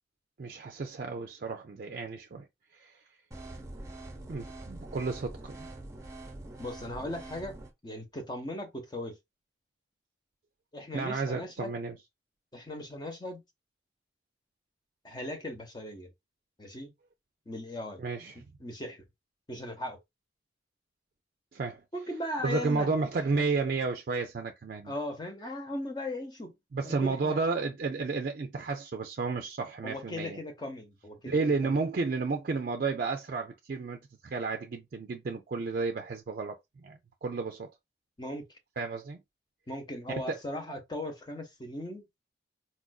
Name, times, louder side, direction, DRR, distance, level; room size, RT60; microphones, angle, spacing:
voice 1, 0.4-2.5 2.7-3.0 4.3-5.7 10.9-12.0 18.0-18.5 21.5-21.8 22.4-24.9 26.7-30.4 31.2-36.6 36.8-37.7 38.8-39.2 40.3-40.4, right 4 dB, 50° right, 0.4 m, -32 dB
sound 1, 3.3-7.7, right 2 dB, 15° right, 0.7 m, -44 dB
voice 2, 6.6-7.6 7.8-9.2 10.7-11.7 12.5-13.4 15.0-16.1 16.6-16.9 17.5-18.0 18.6-19.0 19.5-20.0 21.9-22.9 23.4-23.6 24.8-26.6 26.8-27.4 29.8-31.8 38.2-38.6 39.7-42.1, left 1 dB, 25° left, 0.8 m, -38 dB
4.3 x 2.4 x 2.3 m
head